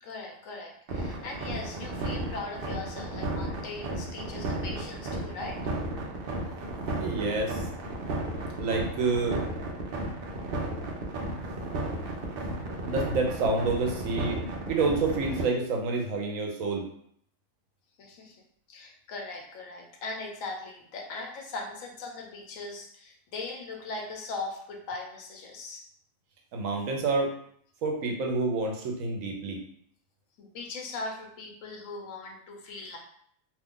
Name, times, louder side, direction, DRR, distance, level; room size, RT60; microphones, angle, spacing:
voice 1, 0.0-5.6 18.0-18.4 18.7-25.8 30.4-33.0, left 3 dB, 75° left, 1 dB, 1.1 m, -39 dB
sound 1, 0.9-15.4, right 2 dB, 55° right, 0.7 m, -33 dB
voice 2, 7.0-7.7 8.6-9.4 12.9-14.4 14.7-16.9 26.5-27.3 27.8-29.6, right 3 dB, 75° right, 2 dB, 1.1 m, -28 dB
2.7 x 2.3 x 3.6 m, 0.65 s
omnidirectional pair, 1.4 m